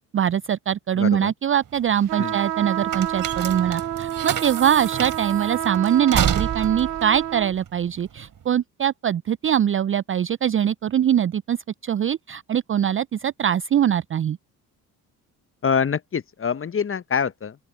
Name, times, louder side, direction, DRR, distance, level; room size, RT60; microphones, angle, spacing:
voice 1, 0.1-11.6 11.8-14.4, right 9 dB, 30° right, 0.6 m, -22 dB
voice 2, 1.0-1.3 2.2-2.3 15.6-17.5, left 6 dB, 30° left, 1.1 m, -25 dB
sound 1, 1.6-8.4, right 8 dB, 45° right, 4.2 m, -29 dB
sound 2, 2.1-7.5, right 12 dB, 90° right, 1.0 m, -29 dB
open air
hypercardioid pair, 50°, 45 cm